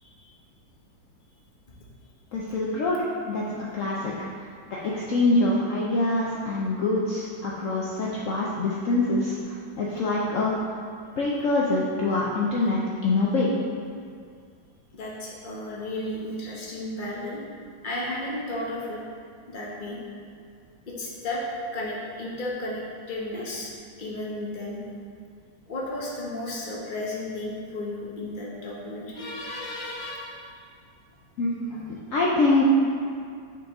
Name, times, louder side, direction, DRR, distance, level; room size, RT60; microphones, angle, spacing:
voice 1, 2.3-3.0 3.2-3.4 3.7-4.1 4.7-10.5 11.2-13.5 31.4-32.6, left 2 dB, 75° left, -5 dB, 0.7 m, -25 dB
voice 2, 14.9-17.4 17.8-19.0 19.5-20.0 20.9-21.4 21.7-22.8 23.1-23.7 24.0-24.8 25.7-30.6, left 1 dB, 35° left, -4 dB, 0.8 m, -33 dB
6.1 x 4.7 x 3.5 m, 2.2 s
omnidirectional pair, 2.1 m